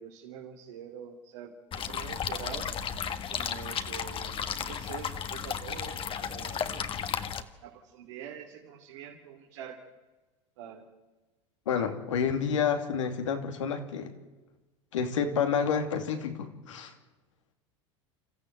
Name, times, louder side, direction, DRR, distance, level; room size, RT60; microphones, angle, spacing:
voice 1, 0.0-2.7 3.3-6.8 7.3-9.8 10.6-10.9, right 8 dB, 75° right, 1 dB, 2.8 m, -45 dB
sound 1, 1.7-7.4, left 7 dB, 35° left, 1.5 m, -34 dB
voice 2, 11.7-14.1 14.9-16.9, left 6 dB, 85° left, 6 dB, 2.8 m, -29 dB
29.5 x 14.0 x 8.0 m, 1.2 s
hypercardioid pair, 95°, 16 cm